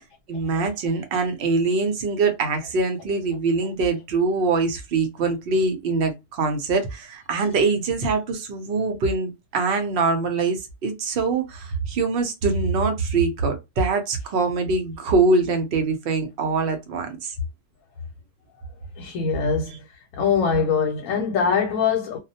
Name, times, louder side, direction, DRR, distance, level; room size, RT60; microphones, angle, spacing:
voice 1, 0.3-17.3, right 3 dB, 60° right, 0.7 m, -23 dB
voice 2, 19.0-19.9 20.1-22.2, left 6 dB, 85° left, 1.0 m, -23 dB
2.2 x 2.0 x 2.7 m
omnidirectional pair, 1.3 m